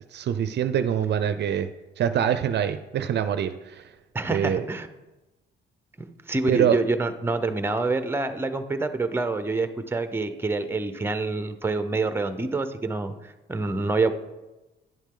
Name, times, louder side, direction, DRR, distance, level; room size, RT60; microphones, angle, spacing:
voice 1, 0.1-3.9 4.3-4.6 6.5-6.8, right 9 dB, 60° right, 11 dB, 0.5 m, -25 dB
voice 2, 4.1-4.9 6.0-14.1, right 3 dB, 10° right, 10 dB, 0.7 m, -27 dB
10.0 x 7.1 x 3.8 m, 1.1 s
cardioid pair, 90°, 20 cm